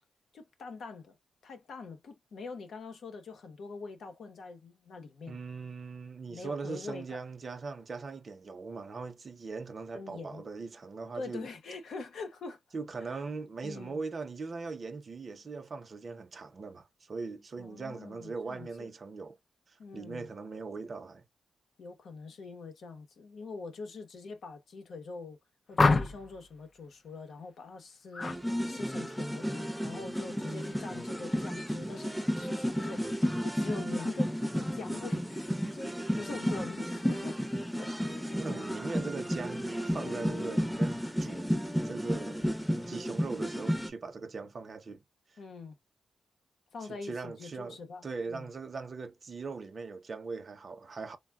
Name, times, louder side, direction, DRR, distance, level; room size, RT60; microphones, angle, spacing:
voice 1, 0.3-1.1 1.4-5.4 6.3-7.1 9.9-10.4 11.2-12.6 13.6-14.0 17.6-18.9 19.8-20.3 21.8-25.4 25.7-28.3 28.7-29.5 29.8-38.3 39.9-40.3 45.4-45.8 46.7-48.5, left 4 dB, 75° left, 0.8 m, -44 dB
voice 2, 5.3-11.5 12.7-19.4 19.7-21.2 38.4-42.5 42.9-45.0 46.9-51.2, right 4 dB, 50° right, 0.6 m, -40 dB
sound 1, 25.8-26.4 28.1-28.4 28.8-29.2, left 3 dB, 40° left, 0.4 m, -26 dB
sound 2, 28.2-43.9, equal, ahead, 0.6 m, -33 dB
3.4 x 2.2 x 2.2 m
cardioid pair, 70°, 0 cm